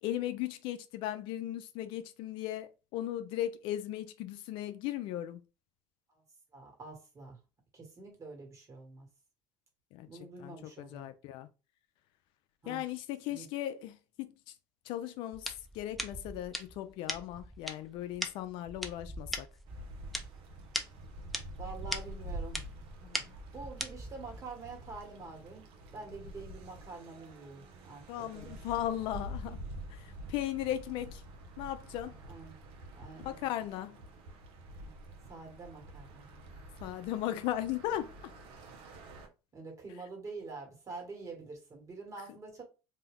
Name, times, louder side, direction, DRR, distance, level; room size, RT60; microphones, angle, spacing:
voice 1, 0.0-5.4 9.9-10.1 10.4-11.5 12.7-14.5 14.8-19.5 28.1-29.6 29.9-31.2 31.6-32.2 33.2-34.0 36.8-38.3, left 13 dB, 65° left, 0.4 m, -37 dB
voice 2, 6.5-7.4 7.7-9.1 10.1-11.1 12.6-12.8 13.3-13.5 21.6-22.6 23.0-25.7 25.9-28.5 32.3-32.5 32.9-33.3 35.3-36.3 39.5-42.6, right 3 dB, 35° right, 1.6 m, -46 dB
sound 1, 15.3-24.4, equal, ahead, 0.5 m, -41 dB
sound 2, 19.7-39.3, right 1 dB, 70° right, 0.7 m, -47 dB
2.7 x 2.3 x 3.4 m
supercardioid pair, 85°, 9 cm